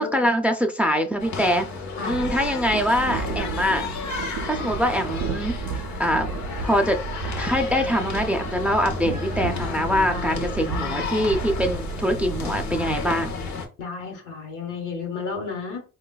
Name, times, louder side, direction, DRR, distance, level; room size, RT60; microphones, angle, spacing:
voice 1, 0.0-1.7 2.1-3.9 4.5-5.6 6.0-7.0 7.4-13.3, equal, 5° right, 0.4 m, -24 dB
sound 1, 1.2-13.7, left 4 dB, 65° left, 0.8 m, -33 dB
sound 2, 2.1-13.5, right 5 dB, 80° right, 0.5 m, -33 dB
voice 2, 10.1-11.4 13.8-15.8, left 4 dB, 85° left, 1.1 m, -33 dB
3.8 x 2.3 x 2.2 m
cardioid pair, 90°, 30 cm